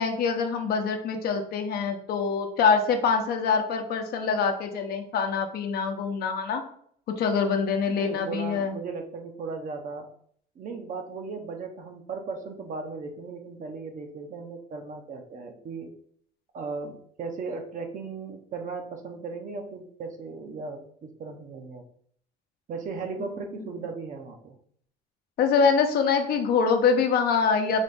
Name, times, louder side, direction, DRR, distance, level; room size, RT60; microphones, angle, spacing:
voice 1, 0.0-6.6 7.2-8.8 25.4-27.8, left 5 dB, 65° left, 5 dB, 0.7 m, -24 dB
voice 2, 7.9-10.1 10.6-15.9 16.5-21.9 22.7-24.6, right 4 dB, 50° right, 5 dB, 0.8 m, -37 dB
4.1 x 3.0 x 3.4 m, 0.62 s
cardioid pair, 110°, 17 cm